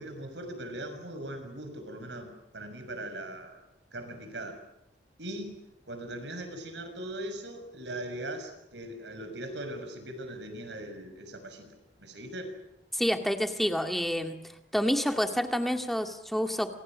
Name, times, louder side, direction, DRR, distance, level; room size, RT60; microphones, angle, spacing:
voice 1, 0.0-3.6 3.9-4.6 5.2-5.6 5.9-12.5, right 1 dB, 75° right, 7 dB, 6.5 m, -40 dB
voice 2, 12.9-14.4 14.7-16.7, equal, ahead, 5 dB, 2.1 m, -28 dB
28.5 x 28.0 x 6.4 m, 0.82 s
head